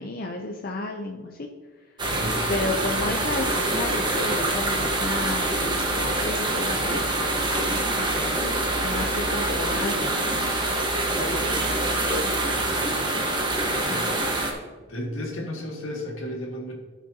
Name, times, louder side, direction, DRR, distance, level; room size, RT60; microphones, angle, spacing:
voice 1, 0.0-1.5 2.5-8.4 8.8-10.6 11.1-12.0 13.8-14.2, left 2 dB, 45° left, 1 dB, 0.6 m, -33 dB
sound 1, 2.0-14.5, right 2 dB, 25° right, 1.3 m, -25 dB
voice 2, 2.1-2.4 12.5-13.0 13.8-14.1 14.9-16.8, equal, 80° left, -1 dB, 2.2 m, -34 dB
16.0 x 6.1 x 2.8 m, 1.4 s
head